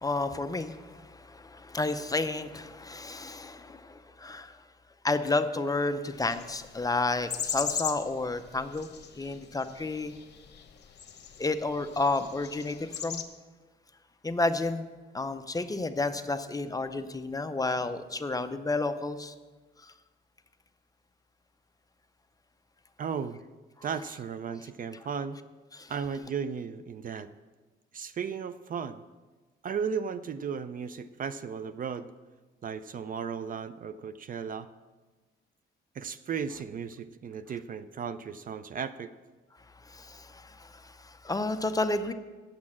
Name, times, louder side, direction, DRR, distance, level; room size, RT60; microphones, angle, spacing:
voice 1, 0.0-4.6 5.0-8.9 9.2-10.1 11.4-13.2 14.2-14.9 15.1-19.3 19.8-19.9 25.7-25.9 39.8-42.1, left 2 dB, 15° left, 9 dB, 0.6 m, -31 dB
sound 1, 6.2-13.2, left 7 dB, 55° left, 1.1 m, -39 dB
voice 2, 23.0-23.4 23.8-25.4 25.9-27.3 27.9-29.0 29.6-32.1 32.6-34.7 35.9-39.1, right 6 dB, 40° right, 13 dB, 0.4 m, -35 dB
8.7 x 6.3 x 7.3 m, 1.3 s
cardioid pair, 100°, 21 cm